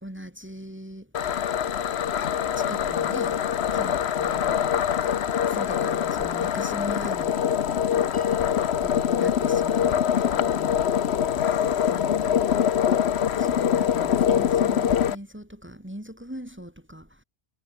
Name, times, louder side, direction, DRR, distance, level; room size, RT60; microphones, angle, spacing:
voice 1, 0.0-1.1 2.5-3.4 3.7-5.2 5.5-7.4 8.4-10.8 11.2-11.5 11.9-12.5 13.4-17.2, equal, 10° right, 2.1 m, -40 dB
sound 1, 1.1-15.2, left 9 dB, 85° left, 1.1 m, -24 dB
Piano, 8.1-10.6, left 1 dB, 30° left, 3.4 m, -48 dB
omnidirectional pair, 1.1 m